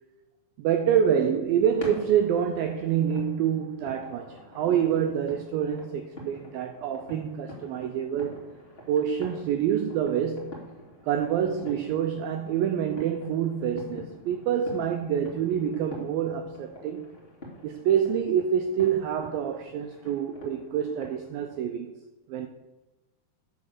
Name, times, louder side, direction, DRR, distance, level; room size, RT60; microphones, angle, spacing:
voice 1, 0.6-8.4 8.9-10.7 11.0-17.1 17.6-21.9 22.3-22.5, right 8 dB, 90° right, 2.0 m, -27 dB
sound 1, 1.7-21.6, left 1 dB, 25° left, 1.4 m, -46 dB
10.0 x 6.4 x 6.6 m
omnidirectional pair, 4.9 m